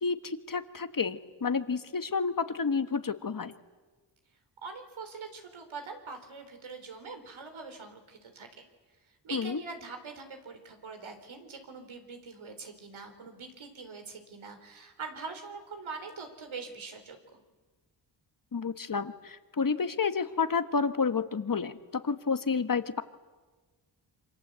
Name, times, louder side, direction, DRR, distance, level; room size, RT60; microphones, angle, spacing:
voice 1, 0.0-3.5 9.3-9.6 18.5-23.0, left 5 dB, 45° left, 10 dB, 1.5 m, -30 dB
voice 2, 4.6-8.7 9.1-17.4, right 4 dB, 80° right, 6 dB, 4.0 m, -43 dB
27.5 x 26.0 x 8.2 m, 1.3 s
wide cardioid pair, 95°, 47 cm